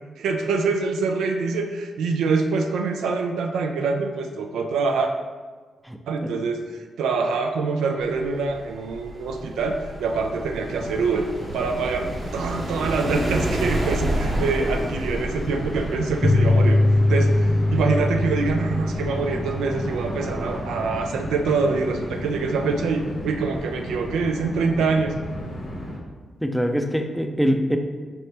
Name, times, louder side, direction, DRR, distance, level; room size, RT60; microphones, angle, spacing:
voice 1, 0.2-5.1 6.1-11.3 11.5-16.8 17.1-25.1, right 4 dB, 85° right, 4 dB, 0.3 m, -25 dB
sound 1, 8.0-20.6, right 1 dB, 55° right, 1.0 m, -31 dB
sound 2, 10.6-26.0, equal, 70° left, 1.2 m, -34 dB
sound 3, 16.2-21.4, left 2 dB, 50° left, 0.6 m, -22 dB
voice 2, 26.4-27.8, equal, ahead, 5 dB, 0.4 m, -23 dB
4.1 x 3.3 x 2.8 m, 1.4 s
supercardioid pair, 55°, 0 cm